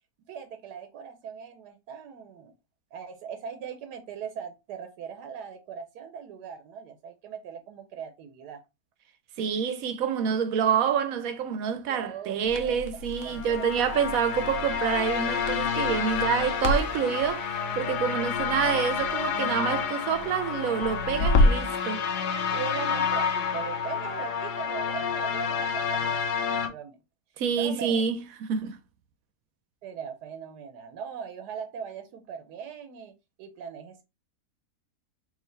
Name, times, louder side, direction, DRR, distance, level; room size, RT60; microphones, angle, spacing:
voice 1, 0.3-2.5 2.9-8.6 11.9-12.8 13.2-13.7 22.5-26.2 26.4-27.0 27.6-28.0 29.8-33.1 33.4-34.0, right 7 dB, 90° right, 1.2 m, -40 dB
voice 2, 9.4-22.1 27.4-28.8, right 7 dB, 70° right, 1.0 m, -27 dB
Crackle, 12.4-21.8, left 2 dB, 60° left, 0.9 m, -30 dB
sound 1, 13.2-26.7, left 6 dB, 85° left, 1.4 m, -29 dB
4.8 x 2.7 x 3.2 m
omnidirectional pair, 1.7 m